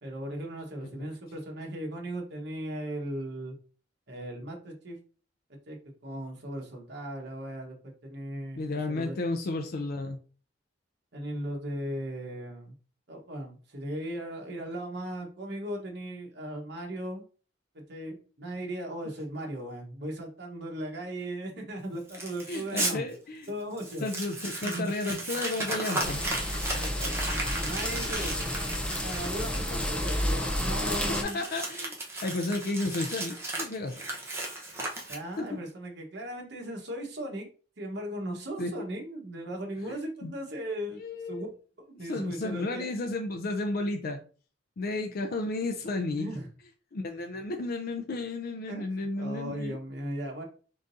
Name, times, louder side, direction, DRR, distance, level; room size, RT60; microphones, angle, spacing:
voice 1, 0.0-3.6 4.1-5.0 5.5-5.8 6.0-9.2 11.1-12.7 13.1-17.2 17.7-23.0 23.5-24.1 24.6-24.9 26.7-28.5 29.0-31.4 35.1-37.5 37.8-41.0 41.3-41.5 41.9-42.9 46.2-46.5 48.7-48.8 49.2-50.4, right 1 dB, 65° right, 1 dB, 1.2 m, -37 dB
voice 2, 8.6-10.2 22.5-23.5 24.0-26.2 31.2-34.0 35.4-35.5 38.6-38.7 39.9-40.3 40.9-41.5 42.1-44.2 44.8-46.3 46.9-49.8, left 2 dB, 55° left, 5 dB, 0.4 m, -33 dB
Crumpling crinkling, 22.1-22.9 23.4-23.5 23.8-35.5, right 2 dB, 15° right, 0.9 m, -35 dB
sound 1, 26.0-31.2, left 1 dB, 5° left, 0.6 m, -31 dB
3.8 x 3.6 x 2.6 m, 0.39 s
head